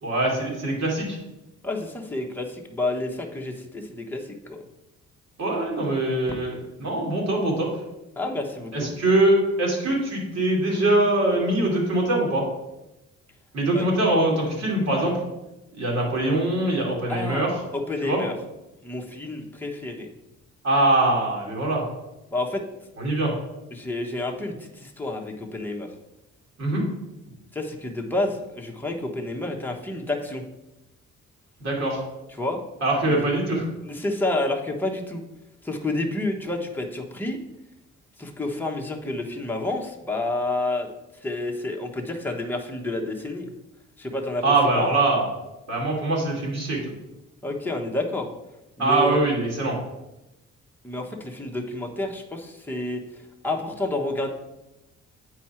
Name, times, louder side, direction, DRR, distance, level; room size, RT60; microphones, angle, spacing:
voice 1, 0.0-1.2 5.4-7.7 8.7-12.4 13.5-15.2 15.7-17.6 18.0-18.2 20.6-21.8 23.0-23.3 26.6-26.9 31.6-32.0 32.8-33.7 44.4-45.3 45.7-46.8 48.8-49.8, right 2 dB, 60° right, -2 dB, 3.0 m, -23 dB
voice 2, 1.6-4.6 8.2-8.9 13.7-13.9 17.1-17.4 17.7-18.3 18.8-20.1 22.3-22.6 23.7-25.9 27.5-30.4 32.4-32.6 33.1-33.2 33.8-35.2 35.6-37.4 38.2-40.9 41.2-43.5 44.0-44.4 44.7-44.9 47.4-48.3 48.8-49.2 50.8-54.3, left 2 dB, 5° left, 0 dB, 1.2 m, -29 dB
8.2 x 4.8 x 4.4 m, 0.96 s
cardioid pair, 90°, 30 cm